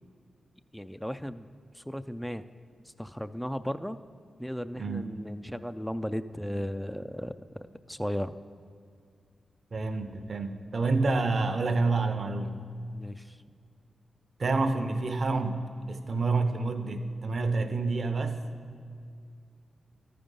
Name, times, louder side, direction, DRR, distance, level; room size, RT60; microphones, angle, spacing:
voice 1, 0.7-1.5 1.7-2.4 3.0-4.0 4.4-7.3 7.9-8.3 12.9-13.4, equal, 5° left, 11 dB, 0.3 m, -35 dB
voice 2, 4.8-5.1 9.7-12.6 14.4-15.6 15.9-18.4, right 3 dB, 60° right, 8 dB, 0.7 m, -28 dB
13.0 x 5.1 x 5.4 m, 2.3 s
cardioid pair, 45°, 0 cm